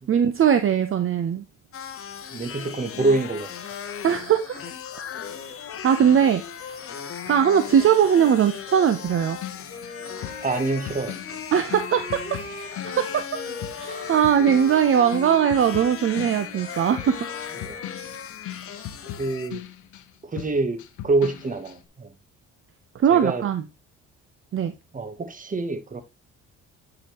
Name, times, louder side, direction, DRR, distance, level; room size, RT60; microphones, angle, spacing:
voice 1, 0.1-1.4 4.0-4.6 5.8-6.9 7.3-9.4 11.5-13.2 13.7-17.2 22.9-23.6 24.5-24.7, right 8 dB, 45° right, 0.7 m, -20 dB
sound 1, 1.7-19.5, left 8 dB, 45° left, 0.9 m, -37 dB
voice 2, 2.3-3.5 10.4-11.2 17.6-17.8 19.2-19.6 20.2-22.1 23.1-23.5 24.9-26.0, right 3 dB, 25° right, 1.1 m, -26 dB
sound 2, 9.0-13.3 13.6-20.1 20.4-21.8, left 12 dB, 80° left, 0.7 m, -39 dB
Wind instrument woodwind instrument, 9.7-18.2, left 2 dB, 25° left, 2.9 m, -40 dB
8.6 x 4.9 x 3.0 m
cardioid pair, 90°, 30 cm